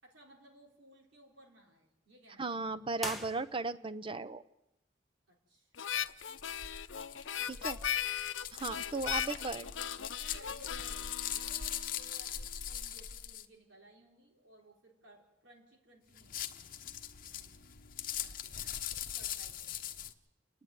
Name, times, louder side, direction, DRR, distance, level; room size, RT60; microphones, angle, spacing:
voice 1, 0.0-2.9 5.3-6.4 6.9-8.0 10.1-16.8 17.2-17.7 18.0-20.0, equal, 80° right, 0 dB, 4.4 m, -61 dB
voice 2, 2.4-4.4 7.4-7.8 8.6-9.7, right 3 dB, 25° right, 12 dB, 0.6 m, -36 dB
sound 1, 3.0-4.0, left 1 dB, ahead, 1.1 m, -42 dB
Harmonica, 5.8-12.3, left 9 dB, 80° left, 0.7 m, -38 dB
sound 2, 6.0-13.5 16.1-20.1, left 9 dB, 45° left, 1.1 m, -41 dB
29.0 x 10.5 x 9.4 m, 0.89 s
head